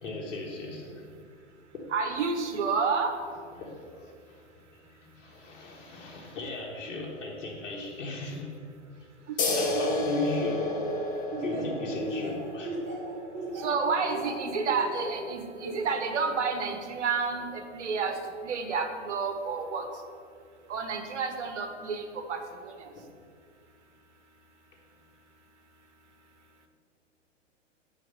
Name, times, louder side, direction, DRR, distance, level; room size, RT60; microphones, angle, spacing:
voice 1, 0.0-1.1 3.5-8.5 9.5-10.9 11.4-12.8, left 2 dB, 75° left, -3 dB, 1.7 m, -36 dB
voice 2, 1.9-3.1 9.3-9.4 9.7-10.1 13.5-18.2 18.4-19.8 20.7-22.9, right 5 dB, 70° right, 6 dB, 1.3 m, -30 dB
sound 1, 9.4-16.5, left 2 dB, 20° left, 1.2 m, -34 dB
Laughter, 11.3-15.2 15.7-16.1, right 2 dB, 30° right, 2.0 m, -36 dB
7.0 x 4.8 x 6.6 m, 2.2 s
hypercardioid pair, 125°, 37 cm